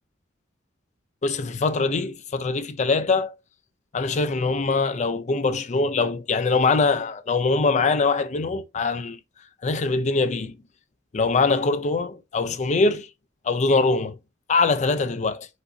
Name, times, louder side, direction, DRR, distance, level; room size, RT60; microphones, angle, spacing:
voice 1, 1.2-3.3 3.9-9.2 9.6-10.5 11.1-13.1 13.5-14.2 14.5-15.5, left 3 dB, 40° left, 0.5 m, -23 dB
5.0 x 3.8 x 2.6 m
head